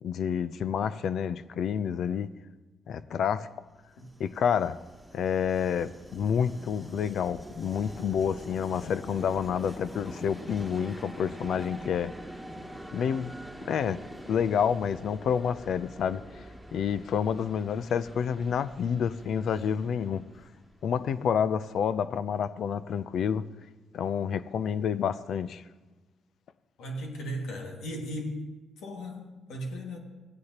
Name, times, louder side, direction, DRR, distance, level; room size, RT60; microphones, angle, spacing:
voice 1, 0.0-2.3 2.9-3.5 4.2-4.8 5.1-12.1 12.9-13.3 13.6-14.0 14.3-16.4 16.7-20.2 20.8-23.4 23.9-25.6, left 7 dB, 65° left, 0.4 m, -29 dB
Train, 3.7-21.5, equal, ahead, 1.7 m, -45 dB
voice 2, 26.8-30.0, equal, 85° left, 2.0 m, -37 dB
16.5 x 9.5 x 2.9 m
cardioid pair, 90°, 0 cm